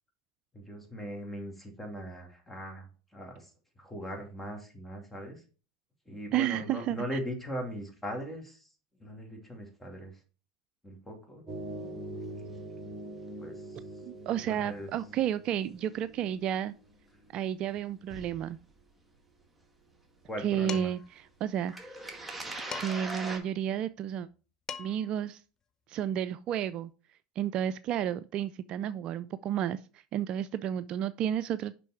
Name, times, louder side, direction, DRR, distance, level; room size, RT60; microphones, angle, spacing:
voice 1, 0.5-5.4 6.1-8.7 9.0-10.2 10.8-11.5 13.4-13.8 14.4-14.9 20.2-20.9, equal, 10° left, 2.8 m, -40 dB
voice 2, 6.3-7.2 14.1-16.7 17.3-18.6 20.4-22.0 22.7-24.3 24.8-25.4 25.9-26.9 27.4-31.7, right 10 dB, 45° right, 0.3 m, -32 dB
sound 1, 11.5-17.4 17.7-18.6 20.2-20.3 20.5-20.6 21.7-23.4, right 1 dB, 10° right, 1.9 m, -42 dB
Dishes pots and pans, 20.7-21.1 22.7-23.2 24.3-24.4 24.7-25.1, left 7 dB, 30° left, 0.8 m, -41 dB
6.9 x 5.5 x 4.5 m
hypercardioid pair, 80°, 2 cm